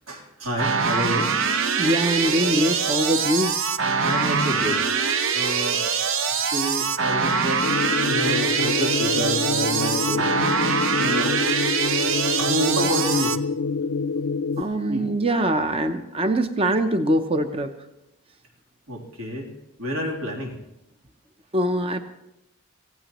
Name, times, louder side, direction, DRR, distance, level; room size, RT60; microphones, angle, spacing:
voice 1, 0.1-1.3 4.0-4.8 5.3-5.8 6.2-10.3 10.5-11.3 12.4-13.3 14.9-15.0 18.9-19.5 19.8-20.6, equal, 80° right, -1 dB, 3.2 m, -29 dB
sound 1, 0.6-13.4, right 6 dB, 65° right, 0.8 m, -24 dB
voice 2, 1.8-3.6 14.6-17.7 21.5-22.0, right 1 dB, 25° right, 8 dB, 0.6 m, -23 dB
sound 2, 7.6-14.6, left 4 dB, 75° left, 0.5 m, -26 dB
25.5 x 16.0 x 3.0 m, 0.88 s
head